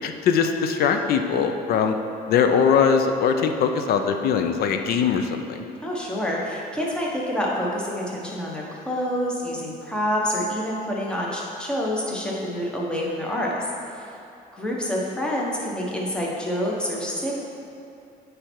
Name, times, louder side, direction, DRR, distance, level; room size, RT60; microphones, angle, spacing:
voice 1, 0.0-1.9 2.3-5.6, left 6 dB, 65° left, 6 dB, 0.5 m, -21 dB
voice 2, 5.8-13.7 13.9-14.1 14.5-17.4, equal, 5° left, -4 dB, 1.1 m, -27 dB
8.5 x 3.4 x 4.5 m, 2.6 s
cardioid pair, 110°, 17 cm